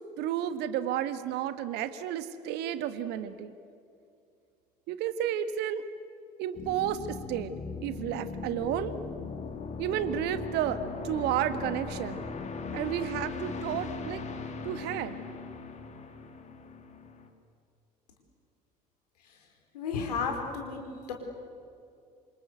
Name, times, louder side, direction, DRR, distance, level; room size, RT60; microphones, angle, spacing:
voice 1, 0.2-3.5 4.9-5.8 6.4-7.5 7.8-8.9 9.8-12.2 12.7-14.2 14.6-15.2, right 10 dB, 55° right, 12 dB, 1.6 m, -32 dB
sound 1, 6.6-17.3, left 4 dB, 35° left, 2.8 m, -39 dB
voice 2, 19.7-20.8 21.1-21.2, left 5 dB, 70° left, 3 dB, 4.7 m, -33 dB
27.5 x 26.5 x 8.1 m, 2.4 s
figure-of-eight pair, 60°, 21 cm